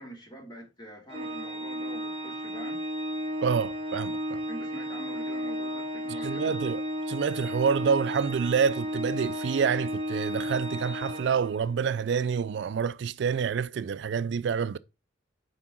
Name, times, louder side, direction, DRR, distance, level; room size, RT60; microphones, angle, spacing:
voice 1, 0.0-2.8 4.5-6.8, right 1 dB, 25° left, 2.6 m, -45 dB
Organ, 1.1-11.9, equal, 30° right, 1.0 m, -33 dB
voice 2, 3.4-4.4 6.2-6.8 7.1-14.8, right 6 dB, 65° right, 0.4 m, -27 dB
5.8 x 4.7 x 6.0 m
head